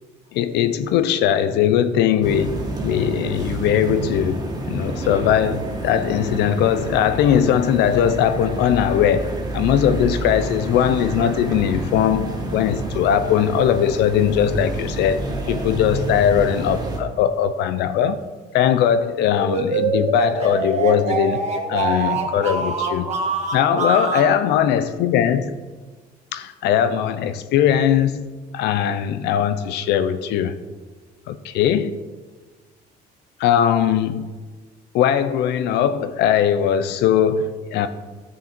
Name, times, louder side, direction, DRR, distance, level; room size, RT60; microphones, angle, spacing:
voice 1, 0.3-15.2 15.5-18.2 18.5-21.4 21.7-23.1 23.5-25.5 26.3-28.3 28.5-30.6 31.3-31.9 33.4-34.3 34.9-37.9, left 9 dB, 85° left, 0.7 m, -20 dB
sound 1, 2.2-17.0, right 2 dB, 25° right, 2.0 m, -29 dB
sound 2, 19.3-24.3, right 4 dB, 40° right, 1.6 m, -24 dB
12.5 x 6.8 x 4.4 m
cardioid pair, 110°, 17 cm